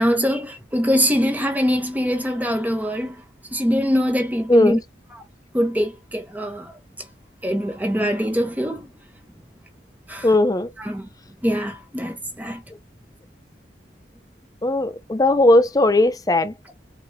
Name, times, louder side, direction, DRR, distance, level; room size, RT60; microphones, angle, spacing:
voice 1, 0.0-3.2 3.5-4.8 5.5-6.8 7.4-8.9 10.1-10.3 10.8-11.1 11.4-12.6, equal, 10° right, 1.0 m, -23 dB
voice 2, 10.2-10.7 14.6-16.5, left 2 dB, 20° left, 0.6 m, -17 dB
4.7 x 3.1 x 2.7 m
head